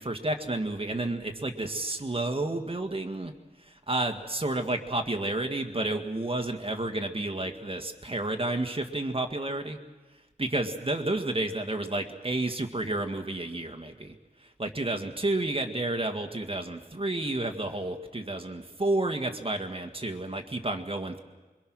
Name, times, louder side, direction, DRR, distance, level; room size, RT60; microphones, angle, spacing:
voice 1, 0.0-3.3 3.6-9.8 10.4-14.1 14.6-21.2, right 2 dB, 35° right, 6 dB, 1.9 m, -31 dB
25.0 x 23.5 x 6.3 m, 1.2 s
wide cardioid pair, 75°, 16 cm